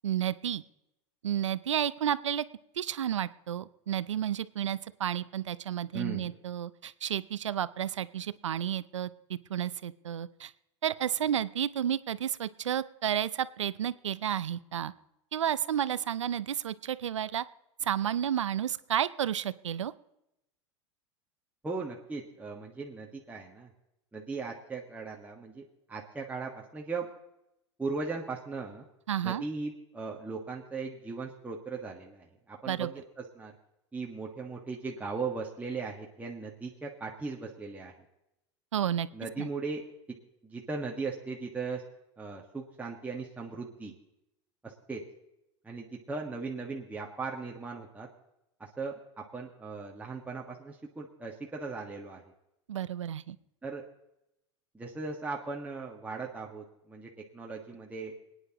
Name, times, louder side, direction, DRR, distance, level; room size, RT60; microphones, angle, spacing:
voice 1, 0.0-0.6 1.2-2.4 2.8-10.5 10.8-14.9 15.3-17.4 17.8-19.9 29.1-29.4 32.7-32.9 38.7-39.1 39.4-39.5 52.7-53.4, right 10 dB, 90° right, 17 dB, 0.5 m, -31 dB
voice 2, 5.9-6.3 21.6-23.7 24.1-27.1 27.8-28.8 29.2-33.5 33.9-37.9 39.1-39.8 40.4-41.8 42.2-43.9 44.6-45.0 45.6-48.1 48.6-52.2 53.6-53.8 54.7-58.1, right 4 dB, 10° right, -2 dB, 1.6 m, -38 dB
27.5 x 9.8 x 3.0 m, 0.87 s
hypercardioid pair, 95°, 15 cm